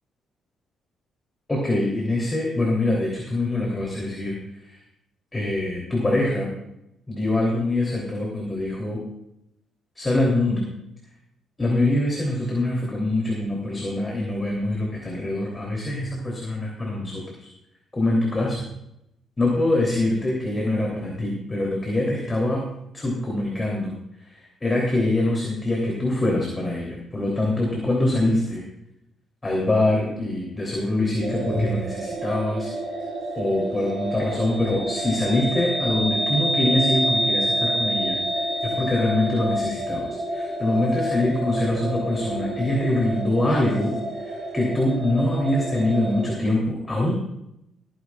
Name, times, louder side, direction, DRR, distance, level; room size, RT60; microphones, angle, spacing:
voice 1, 1.5-4.4 4.6-4.8 5.3-6.5 7.1-9.0 9.9-10.6 11.6-17.5 17.9-18.6 19.4-22.6 22.9-23.9 24.2-28.6 29.4-32.7 33.3-38.5 38.8-43.9 44.2-47.1, left 1 dB, 20° left, -2 dB, 3.3 m, -24 dB
sound 1, 31.2-46.3, right 1 dB, 60° right, 5.3 m, -28 dB
21.5 x 10.0 x 2.5 m, 0.81 s
cardioid pair, 90°, 0 cm